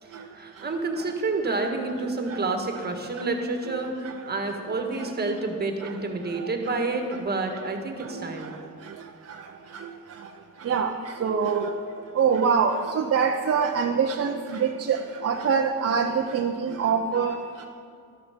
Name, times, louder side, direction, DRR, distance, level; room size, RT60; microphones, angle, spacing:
voice 1, 0.0-8.6, right 3 dB, 30° right, 3 dB, 1.7 m, -29 dB
voice 2, 11.2-11.7 12.2-15.0 15.2-17.4, right 6 dB, 45° right, 2 dB, 0.7 m, -24 dB
13.5 x 13.0 x 5.2 m, 2.5 s
wide cardioid pair, 150°, 35 cm